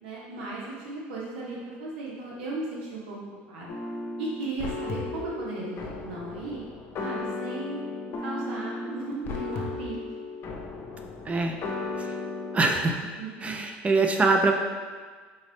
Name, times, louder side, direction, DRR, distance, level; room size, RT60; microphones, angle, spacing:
voice 1, 0.0-3.2 3.5-3.7 4.2-6.7 7.0-7.9 8.2-10.0 13.2-13.5, right 3 dB, 80° right, -5 dB, 0.8 m, -36 dB
sound 1, 3.7-12.8, left 3 dB, 45° left, 0.6 m, -35 dB
voice 2, 11.3-11.6 12.0-12.1 12.5-13.1 13.4-14.5, right 3 dB, 25° right, 3 dB, 0.4 m, -24 dB
4.0 x 2.6 x 3.3 m, 1.5 s
supercardioid pair, 90°, 6 cm